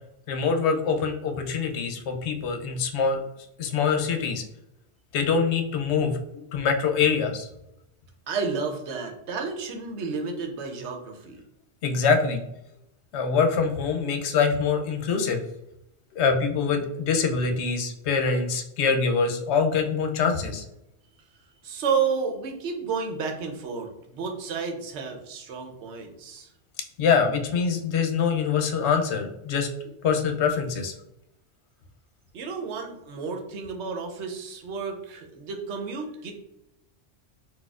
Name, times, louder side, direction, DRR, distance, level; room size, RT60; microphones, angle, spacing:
voice 1, 0.3-3.2 3.6-4.4 5.1-7.5 11.8-12.4 13.1-15.4 16.1-20.6 27.0-29.7 30.0-30.9, left 5 dB, 75° left, 5 dB, 0.8 m, -24 dB
voice 2, 8.3-11.4 21.6-26.5 32.3-36.3, right 5 dB, 80° right, 3 dB, 0.9 m, -31 dB
4.1 x 2.3 x 2.3 m, 0.84 s
omnidirectional pair, 1.2 m